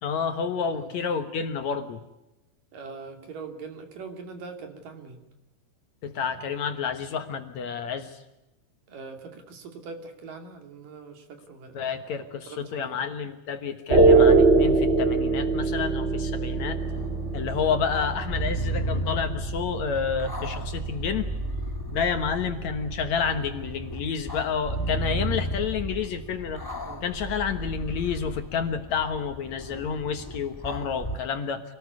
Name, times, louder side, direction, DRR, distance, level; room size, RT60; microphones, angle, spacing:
voice 1, 0.0-2.0 6.0-8.2 11.7-16.8 17.3-21.3 21.9-26.6 27.0-31.6, left 6 dB, 60° left, 8 dB, 2.3 m, -29 dB
voice 2, 2.7-5.2 8.9-11.9 12.5-13.0 26.8-27.0, right 4 dB, 70° right, 6 dB, 4.3 m, -42 dB
sound 1, 13.9-24.1, right 3 dB, 35° right, 1.0 m, -24 dB
sound 2, 16.6-31.2, right 1 dB, 15° left, 0.8 m, -35 dB
26.5 x 19.0 x 9.6 m, 0.97 s
omnidirectional pair, 4.0 m